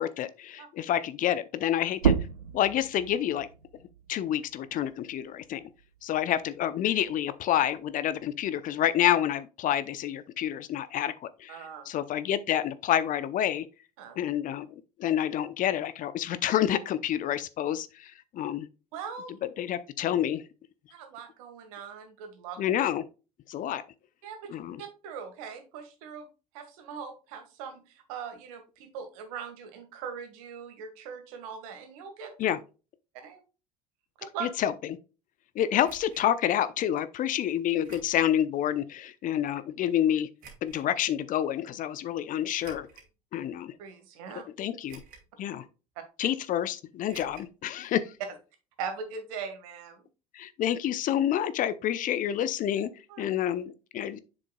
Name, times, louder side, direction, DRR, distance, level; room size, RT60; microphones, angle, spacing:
voice 1, 0.0-2.1 2.5-3.5 4.1-5.6 6.0-11.6 11.9-13.7 14.2-14.7 15.0-18.7 19.6-20.4 22.6-23.0 23.5-23.8 24.5-24.8 32.4-32.6 34.6-34.7 35.6-40.3 40.6-42.9 43.3-43.7 44.6-45.0 45.4-45.7 46.2-48.0 50.3-52.9 53.2-54.2, left 11 dB, 45° left, 0.6 m, -28 dB
sound 1, 1.9-7.2 7.6-9.3, right 6 dB, 90° right, 0.4 m, -33 dB
voice 2, 11.5-11.9 14.0-14.2 18.9-19.4 20.9-22.6 24.2-26.3 26.5-32.3 33.2-33.4 34.2-34.5 43.8-44.4 48.8-50.1 53.1-53.2, right 6 dB, 65° right, 1.7 m, -40 dB
sound 2, 35.8-36.3 37.8-38.3 38.9-39.0 40.4-40.8 42.5-43.1 43.8-43.9 44.9-45.4 45.6-45.7 47.1-47.5 47.8-47.9 48.2-48.3, right 5 dB, 50° right, 2.5 m, -50 dB
7.4 x 6.3 x 2.3 m
figure-of-eight pair, 65°, 20 cm